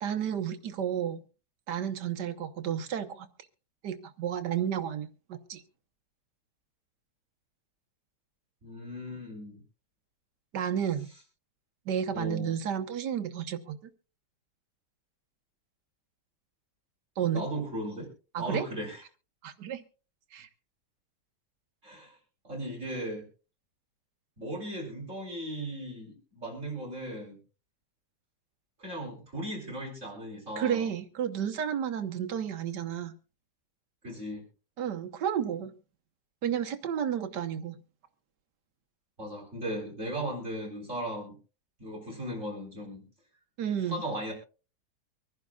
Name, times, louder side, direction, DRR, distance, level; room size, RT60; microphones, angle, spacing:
voice 1, 0.0-1.2 1.7-3.3 3.8-5.6 10.5-11.1 11.9-13.9 17.2-17.5 18.3-18.7 19.4-19.8 20.3-20.5 30.6-33.1 34.8-35.7 36.4-37.8 43.6-44.0, right 9 dB, 75° right, 7 dB, 1.6 m, -32 dB
voice 2, 8.6-9.6 12.1-12.5 17.3-18.1 18.4-19.0 21.8-22.2 22.4-23.2 24.4-27.4 28.8-30.9 34.0-34.4 39.2-41.4 41.8-43.0 43.8-44.3, right 1 dB, 45° right, -1 dB, 4.4 m, -37 dB
24.5 x 10.5 x 2.4 m, 0.35 s
omnidirectional pair, 1.8 m